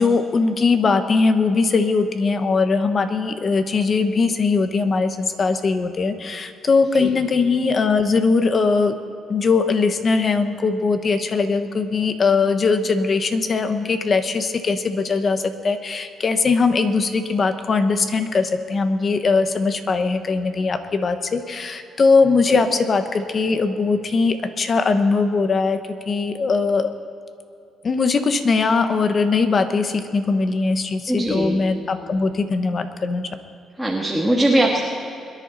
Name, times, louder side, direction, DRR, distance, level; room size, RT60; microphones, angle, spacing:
voice 1, 0.0-9.0 9.3-25.8 26.1-26.9 27.8-33.3, left 4 dB, 45° left, 9 dB, 1.1 m, -20 dB
voice 2, 31.1-31.6 33.8-34.8, right 1 dB, 5° right, -2 dB, 1.6 m, -20 dB
22.5 x 10.5 x 4.1 m, 2.6 s
cardioid pair, 90°, 0 cm